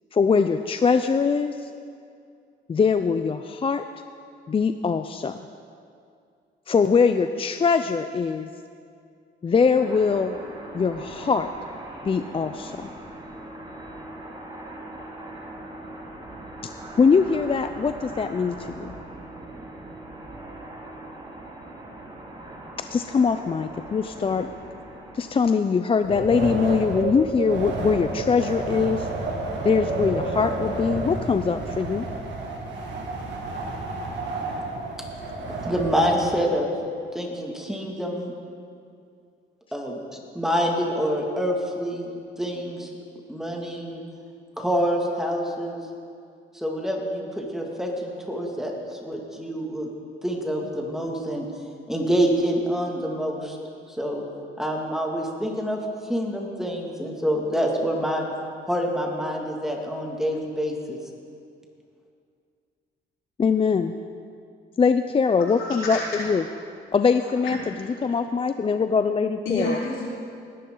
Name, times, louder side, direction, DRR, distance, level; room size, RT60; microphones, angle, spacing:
voice 1, 0.1-1.7 2.7-3.8 4.5-5.4 6.7-8.5 9.4-10.4 10.7-11.5 12.0-12.9 17.0-18.9 22.9-24.5 25.1-29.1 29.6-32.0 63.4-63.9 64.8-66.4 66.9-67.6 68.0-69.7, left 5 dB, 25° left, 9 dB, 0.4 m, -22 dB
sound 1, 9.7-25.8, right 1 dB, 20° right, 2.3 m, -41 dB
Wind, 26.0-36.4, right 3 dB, 65° right, 2.1 m, -30 dB
voice 2, 35.7-36.7 37.1-38.3 39.7-40.0 40.3-42.1 42.4-42.9 43.3-44.0 44.6-45.8 46.5-49.9 50.2-51.4 51.9-53.6 54.0-54.2 54.6-55.8 56.1-58.2 58.7-61.0, equal, ahead, 0 dB, 2.1 m, -26 dB
voice 3, 65.5-66.3 67.2-68.2 69.4-70.1, left 2 dB, 80° left, -5 dB, 3.9 m, -30 dB
19.5 x 11.0 x 3.9 m, 2.4 s
cardioid pair, 90°, 20 cm